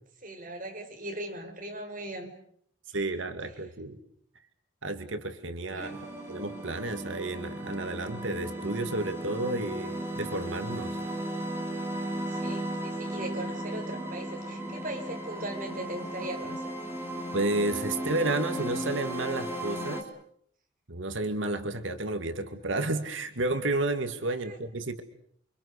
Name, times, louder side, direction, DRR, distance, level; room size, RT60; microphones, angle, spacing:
voice 1, 0.2-2.3 3.1-3.2 5.6-6.0 12.3-16.7 24.3-24.6, right 1 dB, 40° right, 4 dB, 5.0 m, -39 dB
voice 2, 2.9-4.0 4.8-11.0 17.3-20.1 20.9-25.0, right 2 dB, 75° right, 8 dB, 2.1 m, -31 dB
sound 1, 5.8-20.0, right 1 dB, 10° right, 3.5 m, -35 dB
29.5 x 25.0 x 6.6 m, 0.64 s
head